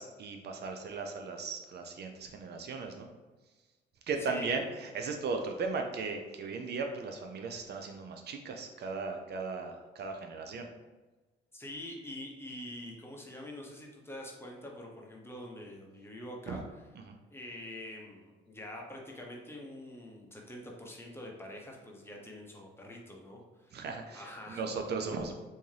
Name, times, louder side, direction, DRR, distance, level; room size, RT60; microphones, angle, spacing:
voice 1, 0.0-3.1 4.1-10.7 16.5-16.6 17.1-17.2 23.7-25.3, right 4 dB, 55° right, 4 dB, 0.5 m, -37 dB
voice 2, 4.2-4.6 11.5-16.6 17.3-23.8 24.1-24.6, left 1 dB, 10° left, -1 dB, 0.8 m, -45 dB
3.4 x 2.7 x 3.2 m, 1.2 s
cardioid pair, 90°, 20 cm